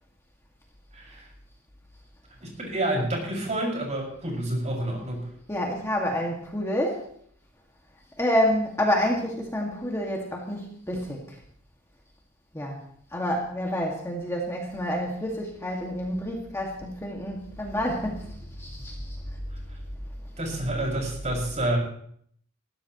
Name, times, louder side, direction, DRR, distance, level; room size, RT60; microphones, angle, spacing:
voice 1, 0.9-1.3 2.4-5.3 20.4-21.8, right 1 dB, 35° right, -1 dB, 5.9 m, -29 dB
voice 2, 5.5-7.1 8.2-11.4 12.5-12.8 13.1-19.2, equal, 15° left, -1 dB, 2.0 m, -28 dB
21.0 x 15.0 x 3.1 m, 0.64 s
head